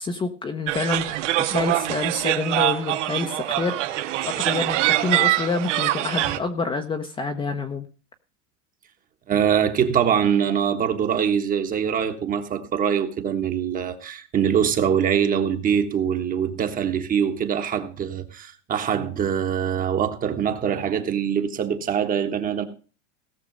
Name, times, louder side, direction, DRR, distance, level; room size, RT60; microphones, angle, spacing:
voice 1, 0.0-4.8 5.0-7.9, left 4 dB, 15° left, 1.0 m, -28 dB
sound 1, 0.7-6.4, right 14 dB, 75° right, 1.6 m, -24 dB
voice 2, 9.3-22.6, right 8 dB, 20° right, 1.4 m, -23 dB
17.0 x 6.8 x 5.3 m
supercardioid pair, 145°, 37 cm